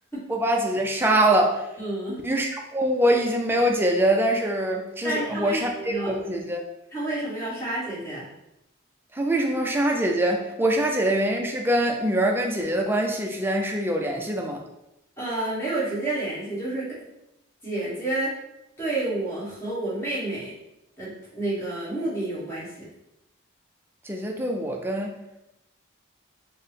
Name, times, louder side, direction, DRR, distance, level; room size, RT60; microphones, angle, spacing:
voice 1, 0.3-1.7 2.2-6.6 9.1-14.6 24.0-25.2, right 1 dB, 10° right, 2 dB, 0.3 m, -24 dB
voice 2, 1.8-2.2 5.0-6.1 6.9-8.3 15.2-16.9 17.6-18.3 18.8-20.5 21.0-22.9, right 2 dB, 15° left, -9 dB, 1.2 m, -29 dB
4.2 x 2.0 x 3.3 m, 0.88 s
head